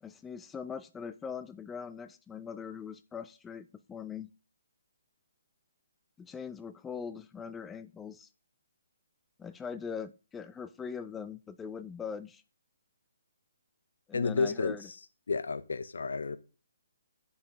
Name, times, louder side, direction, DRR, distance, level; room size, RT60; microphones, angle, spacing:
voice 1, 0.0-4.3 6.2-8.3 9.4-12.4 14.1-14.9, left 6 dB, 10° left, 0.4 m, -41 dB
voice 2, 14.1-14.7 15.3-16.4, left 4 dB, 75° left, 0.8 m, -31 dB
8.6 x 5.5 x 5.0 m
hypercardioid pair, 145°, 0 cm